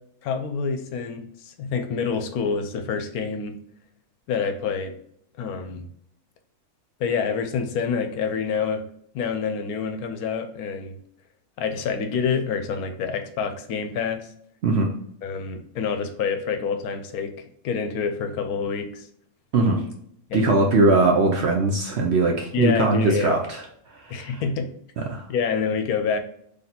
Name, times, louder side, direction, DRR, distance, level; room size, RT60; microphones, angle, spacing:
voice 1, 0.2-3.6 4.3-4.9 5.4-5.8 7.0-8.8 9.1-11.0 11.6-14.3 15.2-19.1 20.3-20.4 22.5-23.4 24.1-24.7 25.3-26.2, left 6 dB, 80° left, 7 dB, 1.1 m, -27 dB
voice 2, 20.3-23.6 24.1-24.4 25.1-25.3, right 3 dB, 65° right, 2 dB, 0.7 m, -20 dB
4.0 x 3.3 x 2.8 m, 0.69 s
omnidirectional pair, 1.6 m